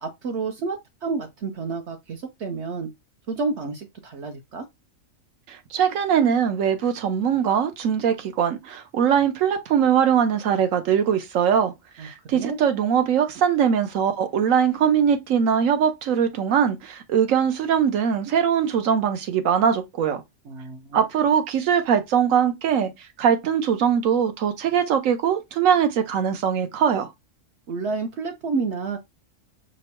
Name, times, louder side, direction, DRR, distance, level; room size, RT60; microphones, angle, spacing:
voice 1, 0.0-2.9 3.3-4.6 12.0-12.6 20.5-21.0 27.7-29.0, right 4 dB, 60° right, 0.9 m, -30 dB
voice 2, 5.5-11.7 12.0-20.2 20.9-22.9 23.2-27.1, right 8 dB, 80° right, 1.1 m, -21 dB
5.3 x 2.1 x 4.3 m
omnidirectional pair, 1.4 m